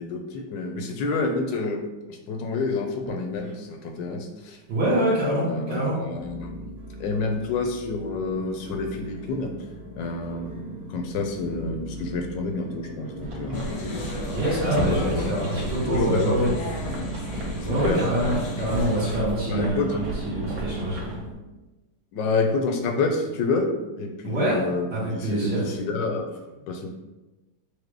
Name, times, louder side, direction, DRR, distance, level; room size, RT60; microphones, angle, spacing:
voice 1, 0.0-4.6 4.9-6.7 7.0-9.6 9.9-10.5 10.9-13.6 14.6-15.4 15.9-16.6 17.6-18.0 19.5-20.0 22.1-23.7 24.0-26.9, left 3 dB, 75° left, 3 dB, 1.2 m, -29 dB
sound 1, 3.0-3.9 4.2-4.8 5.3-5.4 6.2-21.3, right 1 dB, 30° right, 0.8 m, -37 dB
voice 2, 4.7-6.1 14.3-16.5 17.6-21.0 24.2-25.7, right 1 dB, 65° right, -9 dB, 1.6 m, -25 dB
sound 2, 13.2-21.2, right 1 dB, 85° right, 1.8 m, -33 dB
sound 3, 13.5-19.1, left 2 dB, 60° left, 0.9 m, -35 dB
4.8 x 2.0 x 4.6 m, 1.1 s
omnidirectional pair, 2.1 m